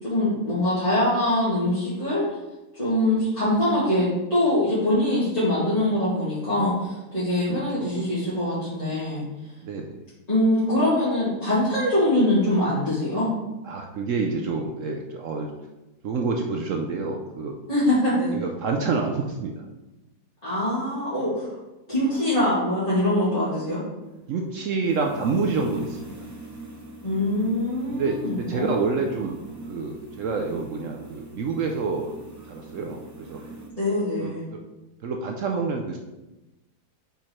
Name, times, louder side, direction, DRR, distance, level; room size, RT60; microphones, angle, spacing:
voice 1, 0.0-2.2 2.8-9.2 10.3-13.3 17.7-18.3 20.4-21.5 21.9-23.8 27.0-28.9 33.8-34.5, left 1 dB, 25° left, -13 dB, 2.1 m, -23 dB
voice 2, 7.5-7.9 9.6-10.0 13.6-15.5 16.0-17.5 18.3-19.6 24.3-26.1 27.9-29.4 29.7-32.1 32.5-33.4 34.2-34.6 35.0-36.0, right 4 dB, 65° right, 2 dB, 0.8 m, -28 dB
sound 1, 24.0-33.7, right 2 dB, 20° right, 0.4 m, -42 dB
5.2 x 4.7 x 4.3 m, 1.0 s
omnidirectional pair, 1.8 m